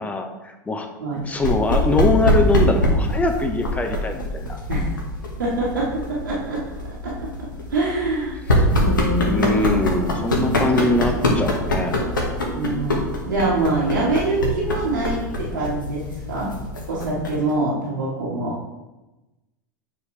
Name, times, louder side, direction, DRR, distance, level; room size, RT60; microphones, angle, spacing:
voice 1, 0.0-0.9 1.3-4.6 8.5-8.7 9.1-12.0, left 2 dB, 15° left, 5 dB, 1.0 m, -23 dB
sound 1, 1.4-17.5, left 1 dB, 90° left, 1.3 m, -24 dB
voice 2, 5.4-6.6 7.0-8.4 8.8-9.8 10.1-10.6 12.4-13.0 13.3-16.5 16.9-18.6, right 2 dB, 85° right, -7 dB, 1.8 m, -25 dB
7.9 x 5.0 x 3.3 m, 1.0 s
hypercardioid pair, 90°, 10 cm